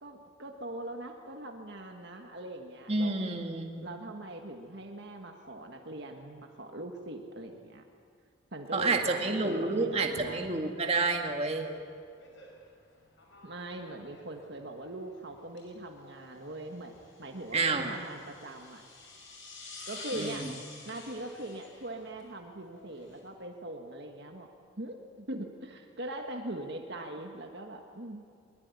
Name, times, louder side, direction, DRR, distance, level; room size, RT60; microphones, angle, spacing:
voice 1, 0.0-3.3 3.8-7.8 8.5-10.4 13.4-16.9 17.2-18.8 19.9-20.5 20.9-24.5 24.8-28.2, right 1 dB, 55° right, 3 dB, 1.7 m, -41 dB
voice 2, 2.9-3.9 8.7-11.7 17.5-17.9 20.1-20.4, right 3 dB, 30° right, 2 dB, 2.1 m, -29 dB
sound 1, 9.9-23.2, left 3 dB, 65° left, 5.9 m, -50 dB
22.5 x 21.5 x 9.7 m, 2.2 s
head